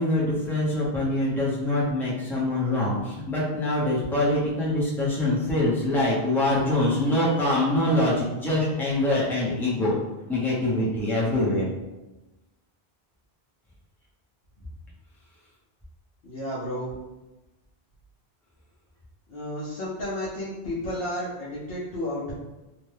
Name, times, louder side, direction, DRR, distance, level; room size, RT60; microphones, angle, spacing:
voice 1, 0.0-9.9 10.3-11.7, left 1 dB, 5° left, -6 dB, 0.5 m, -24 dB
voice 2, 16.2-17.0 19.3-22.3, left 1 dB, 65° left, -7 dB, 0.9 m, -32 dB
2.8 x 2.1 x 3.2 m, 1.1 s
omnidirectional pair, 1.1 m